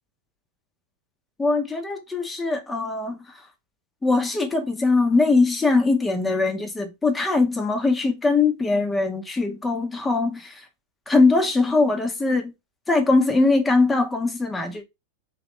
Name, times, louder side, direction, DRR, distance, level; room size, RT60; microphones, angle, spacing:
voice 1, 1.4-3.2 4.0-10.6 11.1-12.5 12.9-14.8, left 3 dB, 15° left, 0.9 m, -21 dB
3.1 x 3.0 x 3.2 m
hypercardioid pair, 100°, 0 cm